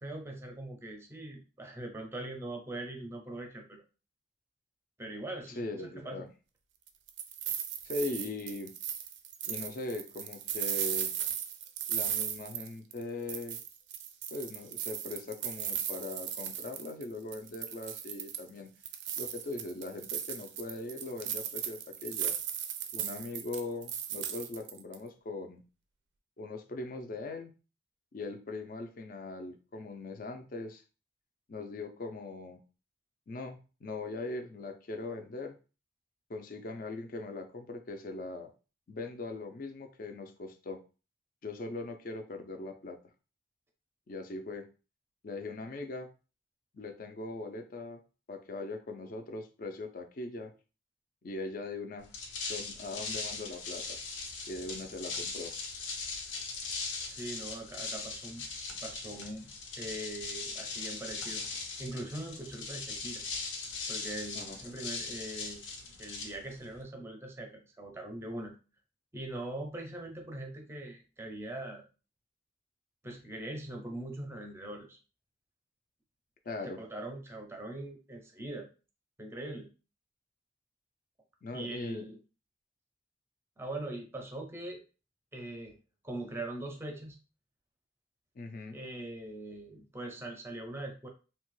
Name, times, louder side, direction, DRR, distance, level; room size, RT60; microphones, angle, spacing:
voice 1, 0.0-3.6 5.0-6.3 57.1-58.4 58.8-59.5 59.8-61.4 61.8-63.2 63.9-65.6 66.0-68.5 69.1-71.8 73.0-75.0 76.8-78.7 79.2-79.7 81.5-82.2 83.6-84.8 85.3-85.8 86.0-87.2 88.7-91.1, right 1 dB, 15° right, 2 dB, 0.5 m, -41 dB
voice 2, 5.5-6.3 7.8-8.7 9.4-11.1 11.9-13.6 14.3-18.7 19.2-22.4 22.9-25.6 26.4-27.5 28.1-30.8 31.5-32.6 33.3-35.6 36.3-38.5 38.9-40.8 41.4-43.0 44.1-44.7 45.2-46.1 46.7-48.0 48.3-50.5 51.2-52.1 52.5-54.0 54.5-55.5 64.3-64.6 76.5-76.8 81.4-82.0 88.4-88.8, left 2 dB, 45° left, 6 dB, 0.4 m, -40 dB
sound 1, 6.9-13.0 13.3-17.0 17.3-18.5 18.8-24.9, right 9 dB, 70° right, 0.4 m, -36 dB
sound 2, 52.0-66.8, left 4 dB, 85° left, 0.6 m, -40 dB
2.8 x 2.2 x 3.0 m, 0.34 s
head